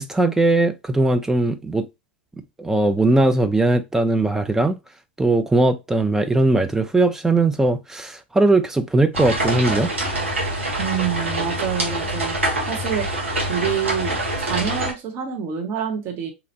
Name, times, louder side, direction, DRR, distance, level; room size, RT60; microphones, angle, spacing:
voice 1, 0.0-1.9 2.6-4.8 5.2-9.9, right 2 dB, 5° right, 0.4 m, -19 dB
sound 1, 9.1-14.9, right 1 dB, 85° right, 1.5 m, -25 dB
voice 2, 10.8-12.3 12.7-13.1 13.5-16.3, right 8 dB, 35° right, 1.3 m, -27 dB
4.2 x 2.9 x 2.8 m
figure-of-eight pair, 100°, 7 cm